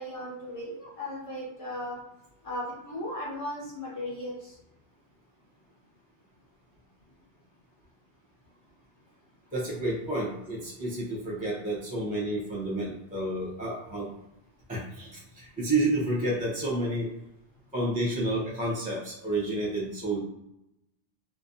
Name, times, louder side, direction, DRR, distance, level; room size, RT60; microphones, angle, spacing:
voice 1, 0.0-2.0 2.4-4.3, left 1 dB, 35° left, -5 dB, 0.6 m, -36 dB
voice 2, 9.5-14.1 14.7-17.1 17.7-20.2, right 1 dB, 10° right, -6 dB, 0.6 m, -30 dB
2.7 x 2.0 x 2.7 m, 0.85 s
omnidirectional pair, 1.1 m